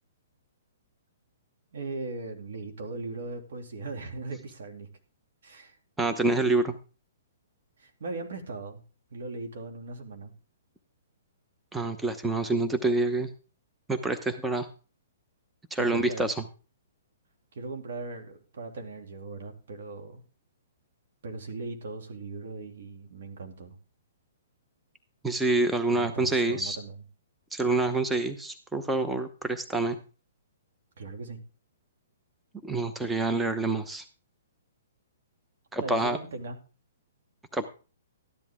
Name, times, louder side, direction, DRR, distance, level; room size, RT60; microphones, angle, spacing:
voice 1, 1.7-4.9 5.4-5.8 7.8-8.8 9.1-10.3 15.8-16.3 17.5-20.2 21.2-23.8 25.9-27.0 31.0-31.4 35.8-36.6, right 3 dB, 65° right, 3 dB, 2.7 m, -38 dB
voice 2, 6.0-6.7 11.7-13.3 13.9-14.7 15.7-16.3 25.2-26.8 27.5-30.0 32.6-34.0 35.7-36.2 37.5-37.7, right 2 dB, 5° right, 8 dB, 0.9 m, -27 dB
13.5 x 10.5 x 3.6 m, 0.35 s
hypercardioid pair, 130°, 0 cm